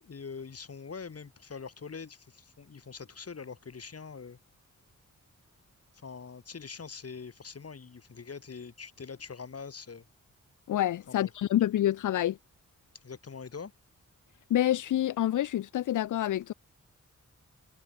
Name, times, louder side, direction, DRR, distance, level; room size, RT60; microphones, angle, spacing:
voice 1, 0.0-4.4 5.9-10.0 11.1-11.3 13.0-13.7, left 5 dB, 50° left, 3.8 m, -43 dB
voice 2, 10.7-12.4 14.5-16.5, left 12 dB, 80° left, 0.5 m, -27 dB
wide cardioid pair, 115°, 30 cm